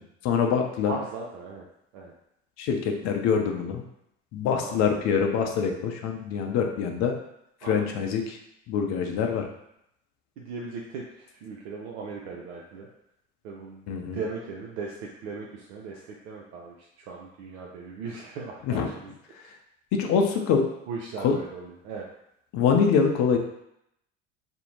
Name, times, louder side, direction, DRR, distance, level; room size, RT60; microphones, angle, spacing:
voice 1, 0.2-0.9 2.6-3.8 4.3-7.1 7.7-8.4 8.7-9.4 13.9-14.2 18.7-18.9 19.9-20.7 21.2-21.4 22.5-23.4, left 6 dB, 50° left, 3 dB, 0.5 m, -24 dB
voice 2, 0.8-1.6 1.9-2.1 4.6-4.8 7.6-8.1 10.4-12.9 13.4-13.8 14.1-19.1 20.9-22.1, right 4 dB, 65° right, -2 dB, 0.5 m, -38 dB
2.6 x 2.0 x 3.0 m, 0.80 s
hypercardioid pair, 70°, 37 cm